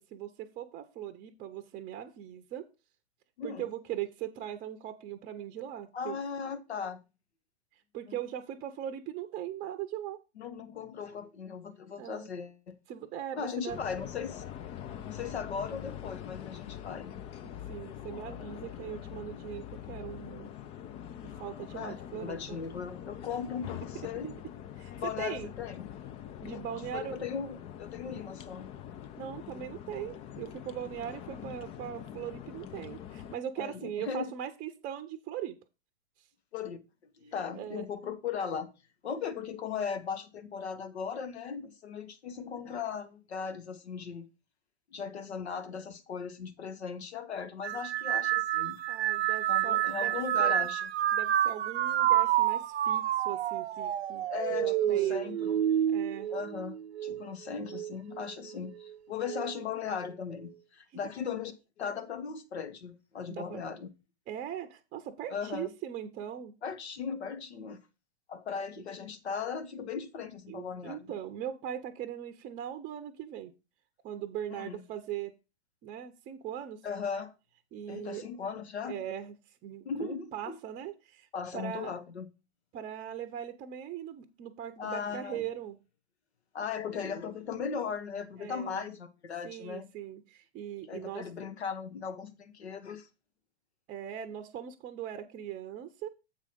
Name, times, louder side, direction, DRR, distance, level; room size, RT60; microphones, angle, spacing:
voice 1, 0.0-2.6 3.4-6.2 7.9-10.2 12.0-12.3 12.9-14.0 17.4-20.5 21.4-22.6 24.8-25.5 26.4-27.2 29.2-35.6 37.5-37.9 48.9-50.7 51.1-55.3 55.9-56.3 63.3-63.7 64.3-66.5 70.5-73.5 74.0-75.3 75.8-76.8 77.7-78.2 78.9-79.4 79.6-81.9 82.7-85.8 88.4-88.9 89.4-91.3 93.9-96.1, right 10 dB, 25° right, 0.7 m, -40 dB
voice 2, 5.9-7.0 8.1-8.2 10.4-12.7 13.3-14.4 15.0-17.1 21.7-24.4 25.0-25.9 26.4-28.7 31.3-31.5 33.6-34.3 36.5-36.8 37.2-38.7 39.0-44.3 44.9-48.8 49.5-50.9 54.3-55.7 56.3-63.9 65.3-65.7 66.6-67.8 68.3-71.1 74.5-74.8 76.8-77.3 77.9-79.0 79.8-80.6 81.3-82.3 84.8-85.5 86.5-89.9 90.9-93.1, left 6 dB, 70° left, 1.5 m, -38 dB
sound 1, 13.7-33.4, left 10 dB, 20° left, 0.4 m, -44 dB
sound 2, 47.6-57.2 57.7-58.3 59.2-59.6, right 12 dB, 70° right, 0.6 m, -29 dB
7.5 x 4.8 x 5.3 m
hypercardioid pair, 110°, 34 cm